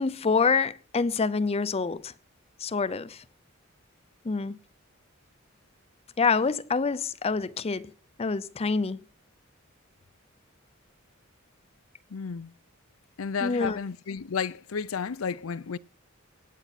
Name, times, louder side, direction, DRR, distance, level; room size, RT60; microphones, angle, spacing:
voice 1, 0.0-2.1 2.6-3.2 4.2-4.6 6.2-7.9 8.2-9.0 13.4-13.8, left 4 dB, 30° left, 0.5 m, -26 dB
voice 2, 12.1-12.5 13.2-15.8, left 6 dB, 85° left, 0.6 m, -32 dB
17.5 x 9.2 x 4.2 m
head